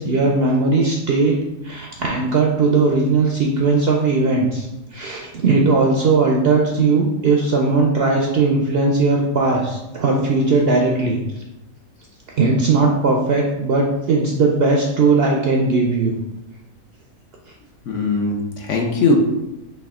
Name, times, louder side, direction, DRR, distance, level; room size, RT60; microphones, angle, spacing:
voice 1, 0.0-1.4 1.6-11.2 12.4-16.1, right 3 dB, 65° right, 0 dB, 0.6 m, -18 dB
voice 2, 17.9-19.2, left 3 dB, 65° left, 1 dB, 1.0 m, -20 dB
5.5 x 2.4 x 3.6 m, 0.96 s
omnidirectional pair, 1.5 m